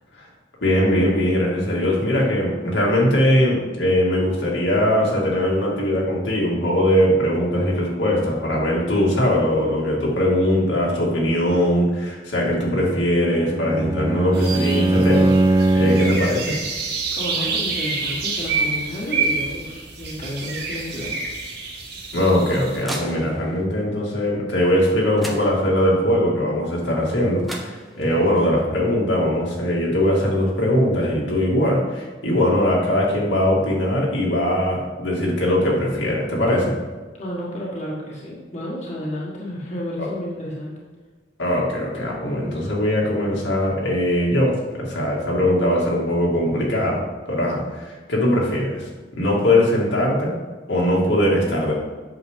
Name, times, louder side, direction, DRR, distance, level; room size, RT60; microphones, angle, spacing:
voice 1, 0.6-16.5 22.1-36.8 40.0-40.1 41.4-47.0 47.3-48.9 49.1-50.3 50.7-51.7, left 1 dB, 75° left, -4 dB, 2.2 m, -21 dB
Bowed string instrument, 13.2-16.4, right 2 dB, 20° right, 0.4 m, -20 dB
sound 1, 14.3-22.8, right 4 dB, 60° right, 1.8 m, -28 dB
voice 2, 17.1-21.2 37.2-40.8, left 1 dB, 40° left, -5 dB, 1.6 m, -31 dB
sound 2, 22.0-23.6 24.8-24.9 25.2-26.0 27.1-27.2 27.4-28.3, right 1 dB, ahead, 0.9 m, -36 dB
8.1 x 6.6 x 3.7 m, 1.3 s
head